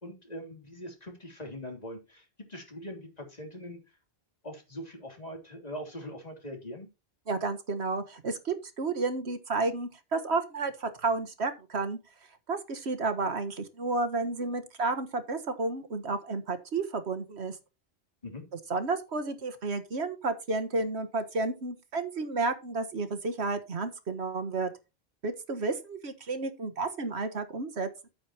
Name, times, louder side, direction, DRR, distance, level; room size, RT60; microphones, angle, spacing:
voice 1, 0.0-3.8 4.4-6.9 18.2-18.4, equal, 40° left, 3.3 m, -42 dB
voice 2, 7.3-12.0 12.5-17.6 18.7-24.7 25.2-28.1, right 3 dB, 85° right, 1.7 m, -31 dB
11.5 x 8.8 x 2.9 m
omnidirectional pair, 1.1 m